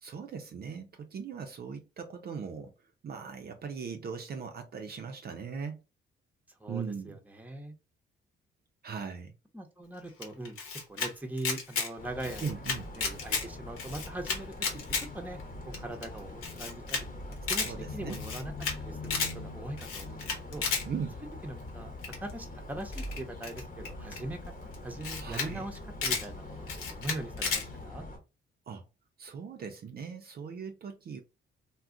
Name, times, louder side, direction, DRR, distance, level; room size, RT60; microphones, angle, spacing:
voice 1, 0.0-2.7 3.0-5.8 6.7-7.2 8.8-9.3 12.4-12.9 17.6-18.2 20.9-21.2 25.2-25.7 28.7-28.8 29.2-31.2, right 6 dB, 45° right, 0.5 m, -39 dB
voice 2, 6.6-7.7 9.5-10.6 10.9-12.5 12.9-14.5 15.0-15.4 15.7-18.5 18.8-20.6 21.4-21.9 22.2-28.0, right 1 dB, 5° right, 0.7 m, -41 dB
Camera, 10.2-11.1 11.4-11.9 12.2-13.4 13.8-15.0 15.4-15.5 15.7-15.8 16.0-16.1 16.4-17.0 17.3-17.7 18.1-18.8 19.0-19.3 19.8-20.8 22.0-22.3 22.9-24.2 24.7-24.8 25.0-25.5 25.7-26.2 26.7-27.6, left 5 dB, 90° left, 0.9 m, -32 dB
sound 1, 12.0-28.2, left 2 dB, 40° left, 1.0 m, -43 dB
2.3 x 2.1 x 3.6 m
cardioid pair, 85°, 21 cm